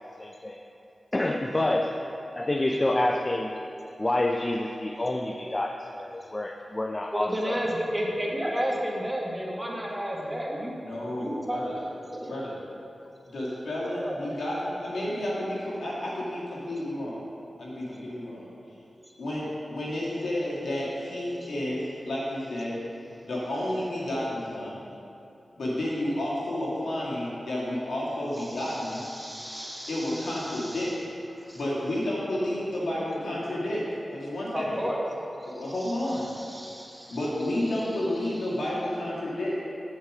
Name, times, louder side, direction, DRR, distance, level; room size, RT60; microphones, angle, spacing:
voice 1, 0.2-0.6 1.1-2.0 2.3-3.5 4.0-7.6, left 1 dB, 30° left, 3 dB, 0.5 m, -28 dB
voice 2, 7.1-10.8 11.2-11.6 12.2-12.3 14.0-14.2 21.4-21.5 28.4-31.0 31.4-31.6 32.8-33.0 34.5-35.0 35.5-37.2, equal, 10° right, -3 dB, 1.6 m, -32 dB
voice 3, 10.8-11.8 12.3-12.5 13.3-17.2 17.6-18.5 19.2-22.8 23.2-24.8 25.6-29.0 29.9-30.9 31.5-33.8 34.1-34.6 35.4-36.3 37.1-39.6, left 1 dB, 90° left, -6 dB, 2.1 m, -31 dB
7.9 x 7.4 x 4.9 m, 2.9 s
cardioid pair, 60°, 0 cm